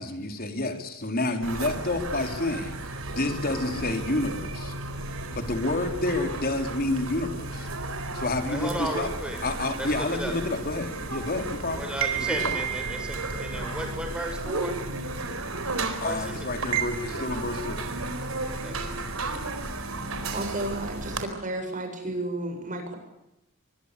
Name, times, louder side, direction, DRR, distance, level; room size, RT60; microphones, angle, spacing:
voice 1, 0.0-2.8 3.1-4.7 5.4-7.7 8.1-9.1 9.4-11.8 12.2-12.6 16.0-17.9, left 2 dB, 45° left, 5 dB, 4.0 m, -29 dB
sound 1, 1.4-21.2, right 3 dB, 80° right, 4.3 m, -33 dB
voice 2, 8.5-9.4 10.2-10.3 11.8-14.7 16.0-16.2 18.6-18.8, equal, 5° right, 5 dB, 6.8 m, -34 dB
voice 3, 20.3-23.0, right 2 dB, 40° right, 5 dB, 7.7 m, -32 dB
24.0 x 23.5 x 8.5 m, 0.88 s
head